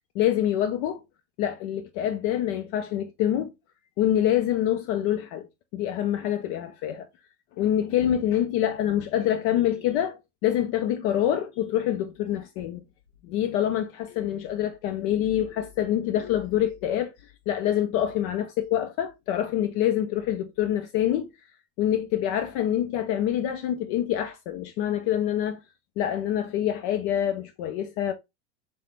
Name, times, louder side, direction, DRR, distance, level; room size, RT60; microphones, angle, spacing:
voice 1, 0.1-1.0 1.4-3.5 4.0-5.5 5.7-7.1 7.6-12.8 13.2-21.3 21.8-25.6 26.0-28.1, left 11 dB, 35° left, 0.4 m, -26 dB
5.7 x 2.2 x 3.1 m
supercardioid pair, 145°, 35 cm